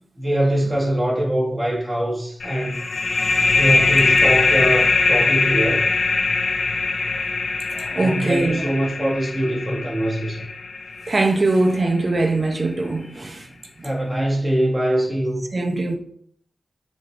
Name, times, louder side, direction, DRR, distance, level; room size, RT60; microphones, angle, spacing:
voice 1, 0.2-2.8 3.2-3.3 3.5-5.9 7.9-10.4 13.8-15.4, right 1 dB, 20° right, 1.5 m, -23 dB
sound 1, 2.4-11.7, left 3 dB, 65° left, 0.3 m, -21 dB
voice 2, 7.7-8.6 11.1-13.5 15.5-16.0, right 2 dB, 40° right, 0.6 m, -21 dB
6.2 x 2.5 x 3.2 m
wide cardioid pair, 95°, 0 cm